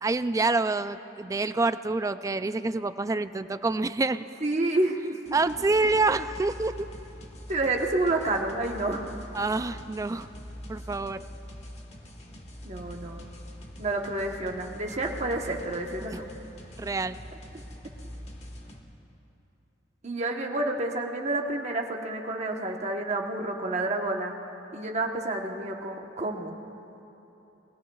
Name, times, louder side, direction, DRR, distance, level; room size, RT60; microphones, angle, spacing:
voice 1, 0.0-4.2 5.3-6.9 9.3-10.3 10.7-11.2 16.8-17.2, right 3 dB, 20° right, 12 dB, 0.3 m, -27 dB
voice 2, 4.4-5.4 7.5-9.0 12.6-13.3 13.8-16.2 20.0-24.3 24.7-26.5, right 2 dB, 40° right, 1 dB, 1.1 m, -29 dB
sound 1, 5.3-18.8, equal, 35° left, 1.4 m, -44 dB
29.5 x 21.0 x 2.4 m, 3.0 s
head